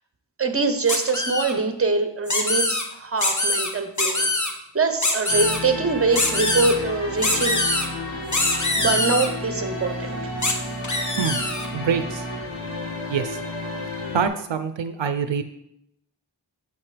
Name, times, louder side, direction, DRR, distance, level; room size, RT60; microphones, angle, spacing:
voice 1, 0.4-4.3 4.7-7.6 8.8-10.3, right 4 dB, 30° right, 8 dB, 0.9 m, -24 dB
sound 1, 0.9-1.5 2.3-2.8 3.2-3.7 4.0-4.5 5.0-5.6 6.2-6.7 7.2-7.9 8.3-9.3 10.4-10.5 10.8-11.7, left 2 dB, 40° left, 1.3 m, -23 dB
sound 2, 5.3-14.3, left 2 dB, 75° left, 2.1 m, -32 dB
voice 2, 11.7-12.3 13.1-13.4 14.1-15.4, right 6 dB, 75° right, 9 dB, 0.6 m, -25 dB
8.6 x 7.7 x 3.4 m, 0.78 s
wide cardioid pair, 70°, 44 cm